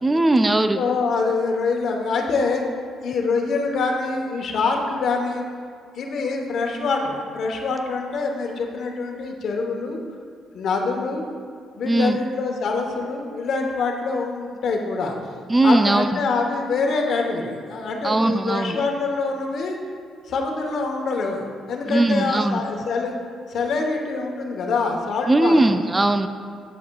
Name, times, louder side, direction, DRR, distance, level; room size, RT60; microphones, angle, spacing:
voice 1, 0.0-0.9 11.8-12.2 15.5-16.2 18.0-18.8 21.9-22.6 25.3-26.3, right 2 dB, 20° right, 9 dB, 0.3 m, -19 dB
voice 2, 0.7-2.6 3.0-5.5 5.9-10.0 10.5-11.2 11.7-15.1 15.6-19.8 20.3-23.1 23.5-25.8, left 4 dB, 65° left, 2 dB, 1.0 m, -25 dB
9.1 x 8.3 x 2.3 m, 2.2 s
cardioid pair, 90°, 0 cm